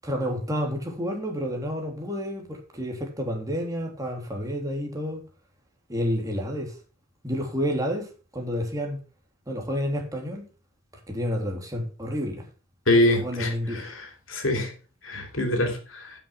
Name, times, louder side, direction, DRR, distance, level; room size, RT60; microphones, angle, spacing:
voice 1, 0.0-5.2 5.9-6.8 7.2-9.0 9.5-10.5 11.1-12.5 13.2-13.9, equal, 15° right, 3.1 m, -30 dB
voice 2, 12.9-14.7 15.0-16.1, left 1 dB, 75° left, 3.1 m, -25 dB
10.0 x 7.1 x 5.9 m
head